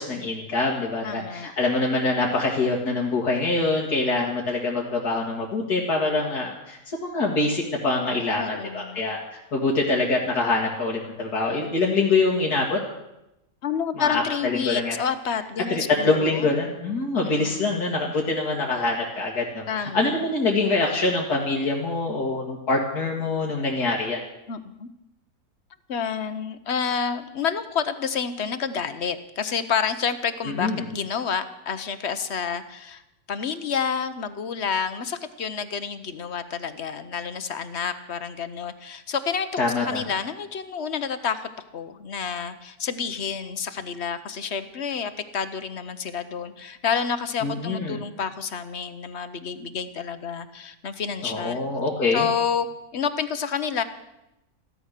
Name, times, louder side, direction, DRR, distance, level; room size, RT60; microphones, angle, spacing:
voice 1, 0.0-9.2 9.5-12.8 14.0-15.0 15.7-24.2 30.6-30.9 39.6-40.0 47.4-48.0 51.2-52.3, left 3 dB, 90° left, -3 dB, 2.5 m, -24 dB
voice 2, 1.0-1.5 8.4-9.0 13.6-16.6 17.2-17.7 19.7-20.2 24.5-24.9 25.9-33.0 33.3-39.5 39.8-51.6 52.1-52.7 52.9-53.8, left 6 dB, 50° left, 12 dB, 1.0 m, -29 dB
15.0 x 13.0 x 6.6 m, 0.90 s
omnidirectional pair, 1.6 m